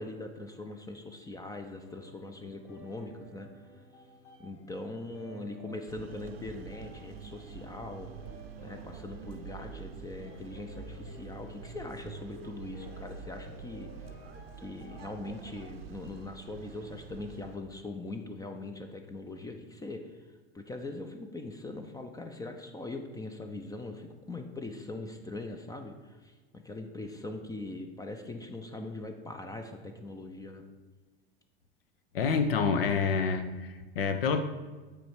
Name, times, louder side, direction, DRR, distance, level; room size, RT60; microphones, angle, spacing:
voice 1, 0.0-3.5 4.4-8.1 8.6-13.9 14.6-20.2 20.5-30.6, left 2 dB, 10° left, 6 dB, 0.5 m, -41 dB
sound 1, 1.8-15.4, left 1 dB, 50° left, 1.9 m, -53 dB
sound 2, 5.9-17.6, right 6 dB, 75° right, 0.6 m, -46 dB
voice 2, 32.1-34.4, left 5 dB, 70° left, 9 dB, 0.6 m, -28 dB
8.5 x 3.3 x 4.8 m, 1.3 s
figure-of-eight pair, 80°, 30 cm